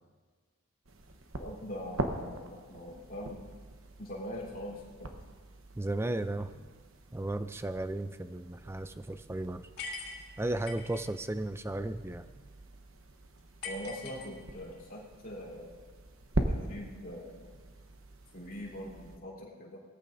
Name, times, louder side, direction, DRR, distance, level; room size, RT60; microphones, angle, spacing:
sound 1, 0.9-19.2, right 1 dB, 65° right, 1.0 m, -42 dB
voice 1, 1.4-3.4 4.0-5.1 13.6-15.8 16.5-17.6 18.3-19.8, equal, 40° left, -4 dB, 3.8 m, -42 dB
voice 2, 5.8-6.6 7.1-9.7 10.4-12.3, right 1 dB, 10° right, 11 dB, 0.4 m, -35 dB
sound 2, 9.8-11.0 13.6-14.8, left 3 dB, 85° left, 3.0 m, -42 dB
20.0 x 14.0 x 2.7 m, 1.5 s
head